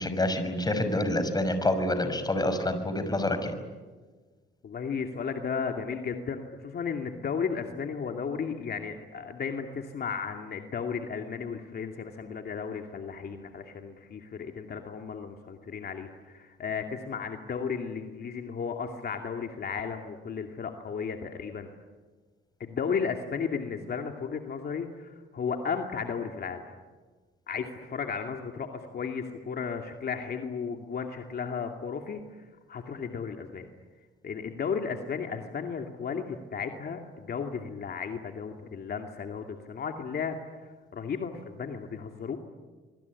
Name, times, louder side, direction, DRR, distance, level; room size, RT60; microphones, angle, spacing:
voice 1, 0.0-3.5, left 1 dB, 20° left, 9 dB, 5.8 m, -27 dB
voice 2, 4.6-21.7 22.6-26.6 27.5-32.2 32.7-33.7 34.2-40.4 40.9-42.4, left 6 dB, 55° left, 4 dB, 2.6 m, -34 dB
25.5 x 24.0 x 9.7 m, 1.4 s
cardioid pair, 90°, 20 cm